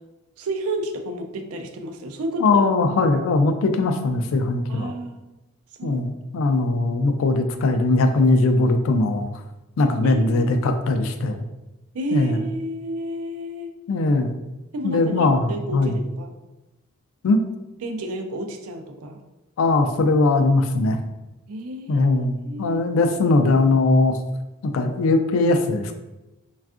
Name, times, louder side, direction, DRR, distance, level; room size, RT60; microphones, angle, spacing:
voice 1, 0.4-2.6 4.7-5.3 5.8-6.0 10.0-10.7 11.9-13.7 14.7-16.3 17.8-19.2 21.5-22.1 22.4-23.1, right 1 dB, 90° right, 5 dB, 0.4 m, -31 dB
voice 2, 2.4-4.9 5.8-9.3 9.8-11.4 12.1-12.4 13.9-14.3 14.8-16.0 17.2-17.4 19.6-21.0 21.9-24.2 24.6-25.9, left 2 dB, 70° left, 7 dB, 0.3 m, -20 dB
3.4 x 2.3 x 2.4 m, 1.0 s
head